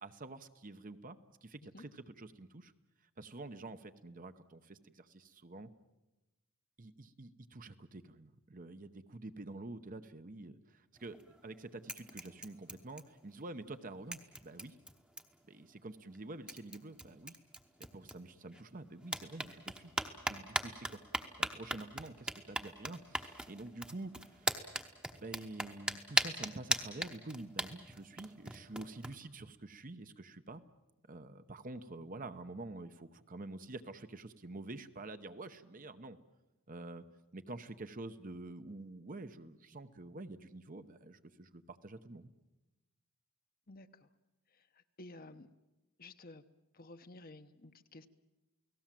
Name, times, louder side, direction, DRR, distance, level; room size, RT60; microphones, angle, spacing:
voice 1, 0.0-2.7 3.2-5.7 6.8-14.8 15.5-17.4 17.8-19.9 20.3-21.0 21.4-24.7 25.2-30.6 31.1-36.2 36.7-37.0 37.3-42.3, right 2 dB, 35° right, 10 dB, 0.9 m, -48 dB
sound 1, 11.0-11.5 11.9-13.4 13.7-13.8 14.1-15.5 16.1-16.2 16.5-18.6 19.0-29.1, right 1 dB, 5° right, 1.0 m, -39 dB
voice 2, 43.7-44.1 44.5-45.5 46.0-46.4 46.7-48.1, left 2 dB, 40° left, 9 dB, 1.0 m, -53 dB
29.5 x 18.0 x 7.6 m, 1.0 s
head